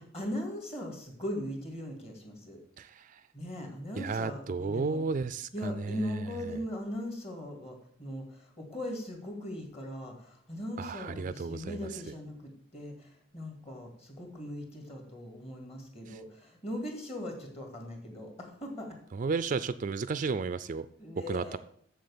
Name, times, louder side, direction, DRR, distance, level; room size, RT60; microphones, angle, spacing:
voice 1, 0.1-2.6 3.3-5.0 5.5-19.0 21.0-21.6, left 1 dB, 30° left, 2 dB, 2.4 m, -39 dB
voice 2, 2.8-3.2 3.9-6.6 10.8-12.0 16.1-16.2 19.1-20.9 21.2-21.6, right 4 dB, 40° right, 14 dB, 0.3 m, -33 dB
7.6 x 7.3 x 7.1 m, 0.63 s
head